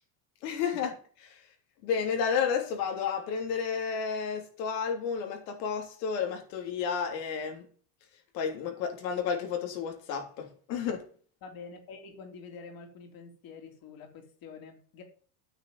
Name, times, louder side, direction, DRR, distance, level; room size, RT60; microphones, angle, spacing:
voice 1, 0.4-0.9 1.2-1.4 1.8-7.6 8.3-11.0, left 6 dB, 85° left, 3.3 m, -31 dB
voice 2, 11.4-15.0, left 5 dB, 45° left, 3.2 m, -47 dB
9.2 x 6.5 x 7.0 m
supercardioid pair, 120°, 48 cm